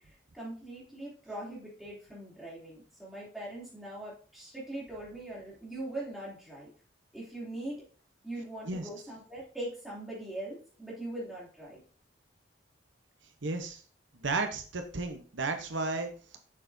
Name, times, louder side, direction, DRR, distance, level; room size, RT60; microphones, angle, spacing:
voice 1, 0.0-6.7 7.1-7.8 8.2-11.8, right 1 dB, ahead, -6 dB, 2.9 m, -41 dB
voice 2, 13.4-13.8 14.1-16.4, right 3 dB, 80° right, 5 dB, 0.9 m, -33 dB
7.3 x 6.5 x 2.7 m, 0.41 s
head